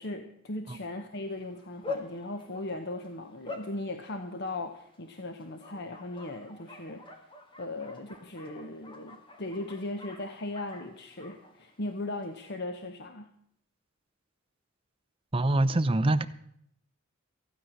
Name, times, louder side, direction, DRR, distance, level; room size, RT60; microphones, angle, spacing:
voice 1, 0.0-7.0 7.6-13.3, left 2 dB, 55° left, 7 dB, 0.9 m, -38 dB
Bark, 1.1-12.4, left 3 dB, 25° left, 1.5 m, -46 dB
voice 2, 15.3-16.2, right 2 dB, 25° right, 11 dB, 0.6 m, -24 dB
15.0 x 9.2 x 6.5 m, 0.71 s
head